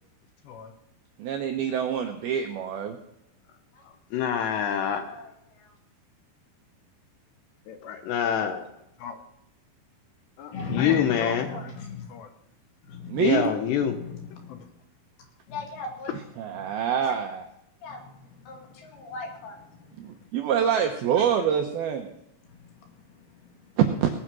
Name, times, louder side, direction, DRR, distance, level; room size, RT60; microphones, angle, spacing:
voice 1, 1.2-3.0 13.1-13.5 16.4-17.4 20.0-22.1 23.8-24.1, right 8 dB, 80° right, 5 dB, 2.2 m, -25 dB
voice 2, 4.1-5.2 7.7-8.7 9.0-9.2 10.4-11.5 12.1-12.3 13.2-14.0 14.5-14.6, left 9 dB, 75° left, 7 dB, 2.8 m, -26 dB
voice 3, 5.1-5.7 10.5-12.2 12.8-13.4 13.8-14.6 15.2-16.7 17.0-17.2 17.8-20.2 21.2-21.3 22.4-23.8, left 4 dB, 60° left, 2 dB, 3.9 m, -39 dB
19.0 x 9.8 x 6.2 m, 0.82 s
omnidirectional pair, 5.6 m